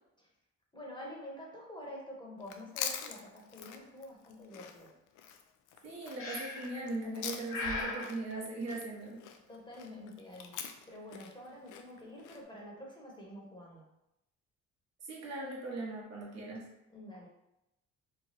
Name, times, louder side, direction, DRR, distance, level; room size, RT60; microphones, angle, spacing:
voice 1, 0.7-4.9 9.5-10.6 10.9-13.8 16.9-17.3, left 1 dB, 15° left, -3 dB, 1.1 m, -47 dB
Chewing mastication, 2.4-7.7 8.0-12.4, left 8 dB, 85° left, 0.5 m, -44 dB
voice 2, 5.8-9.2 15.0-16.7, right 2 dB, 60° right, -3 dB, 1.3 m, -39 dB
Breathing, 6.2-6.8 7.5-8.1, left 3 dB, 45° left, 1.1 m, -37 dB
3.2 x 2.3 x 4.1 m, 0.87 s
cardioid pair, 90°, 30 cm